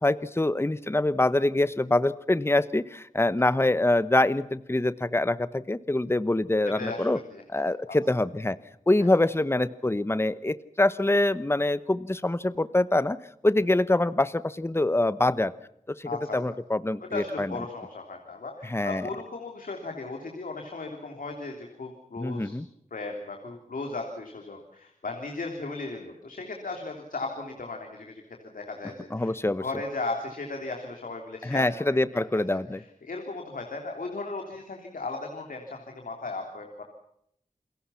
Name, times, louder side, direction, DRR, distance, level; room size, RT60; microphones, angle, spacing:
voice 1, 0.0-7.2 7.5-8.6 8.9-13.2 13.4-15.5 15.9-17.6 18.6-19.1 22.2-22.7 29.1-29.6 31.4-32.8, left 2 dB, 20° left, 15 dB, 1.0 m, -25 dB
voice 2, 6.8-8.0 16.0-16.4 17.0-22.6 22.9-36.8, left 3 dB, 90° left, 3 dB, 3.5 m, -37 dB
29.0 x 22.0 x 5.8 m, 0.74 s
wide cardioid pair, 65°, 14 cm